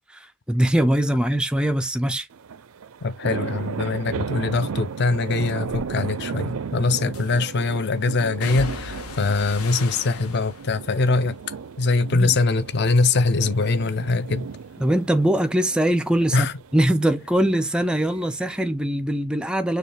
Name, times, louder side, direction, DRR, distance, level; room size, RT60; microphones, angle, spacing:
voice 1, 0.0-2.3 12.1-12.4 14.8-16.5 16.7-19.8, right 1 dB, 5° right, 0.3 m, -22 dB
sound 1, 2.3-18.6, right 6 dB, 80° right, 0.5 m, -35 dB
voice 2, 3.0-11.4 11.8-14.5 16.3-16.5, left 3 dB, 50° left, 0.5 m, -22 dB
sound 2, 5.7-5.9 7.1-7.6 8.4-12.6 13.0-13.6 14.0-17.2 17.5-18.6 18.9-19.1, left 4 dB, 90° left, 0.8 m, -40 dB
6.5 x 2.3 x 3.3 m
head